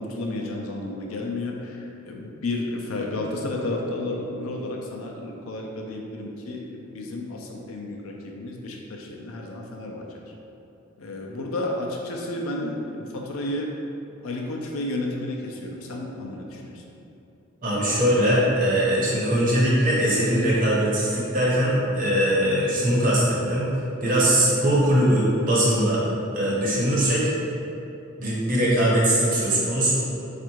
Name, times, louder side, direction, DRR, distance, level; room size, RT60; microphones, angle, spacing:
voice 1, 0.0-10.3 11.0-13.7 14.2-16.8, left 2 dB, 75° left, 0 dB, 0.5 m, -32 dB
voice 2, 17.6-23.7 24.0-26.0 26.3-27.3 28.2-30.0, right 1 dB, 40° right, -7 dB, 1.1 m, -21 dB
4.3 x 2.5 x 4.5 m, 2.9 s
head